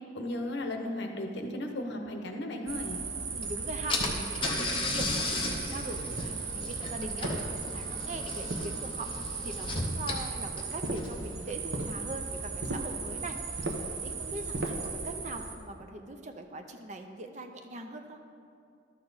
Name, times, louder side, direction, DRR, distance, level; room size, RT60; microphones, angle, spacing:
voice 1, 0.1-3.0, left 1 dB, 60° left, 3 dB, 0.9 m, -35 dB
sound 1, 2.7-15.6, right 5 dB, 85° right, 0.9 m, -37 dB
voice 2, 3.3-9.1 9.4-13.4 14.0-18.2, right 2 dB, 35° right, 6 dB, 0.5 m, -41 dB
Car / Engine, 3.4-3.5 3.9-11.3, left 2 dB, 25° left, 0.8 m, -35 dB
sound 2, 4.0-4.4 5.0-5.6 6.2-6.7 7.2-7.9 8.5-9.2 10.8-11.2 11.7-12.0 12.6-13.0 13.6-14.0 14.5-15.0, right 1 dB, 55° right, 0.8 m, -37 dB
12.0 x 6.7 x 4.0 m, 2.4 s
head